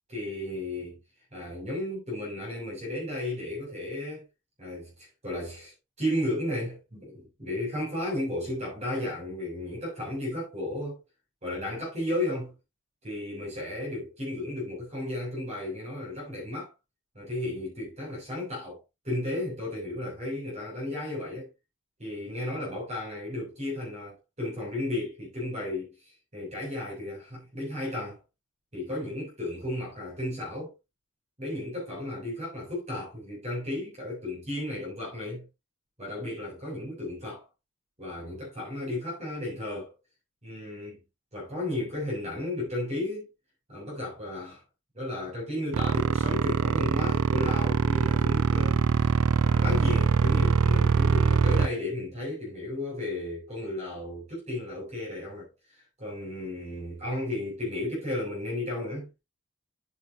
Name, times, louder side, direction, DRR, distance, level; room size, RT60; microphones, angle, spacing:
voice 1, 0.1-1.0 1.3-4.2 4.6-11.0 11.4-12.5 13.0-16.7 17.1-18.8 19.0-21.5 22.0-28.2 28.7-30.7 31.4-35.5 36.0-37.4 38.0-39.9 40.4-41.0 41.3-43.3 43.7-44.6 44.9-48.8 49.4-55.5 56.0-59.1, left 1 dB, 30° right, 6.8 m, -34 dB
sound 1, 45.7-51.7, right 5 dB, 70° right, 0.4 m, -23 dB
9.4 x 8.7 x 2.9 m
head